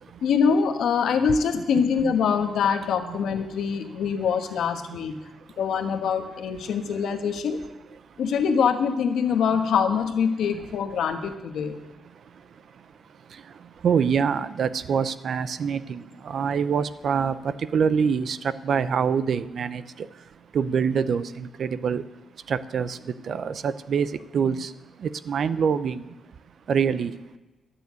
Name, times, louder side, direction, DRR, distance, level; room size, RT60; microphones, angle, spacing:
voice 1, 0.2-5.2 5.6-7.6 8.2-11.8, left 6 dB, 80° left, 1.3 m, -24 dB
voice 2, 4.8-5.6 6.6-6.7 8.1-8.2 9.5-9.6 10.5-10.7 11.9-22.0 22.3-26.1 26.7-27.2, right 6 dB, 55° right, 0.6 m, -27 dB
12.0 x 6.9 x 9.4 m
wide cardioid pair, 145°, 0 cm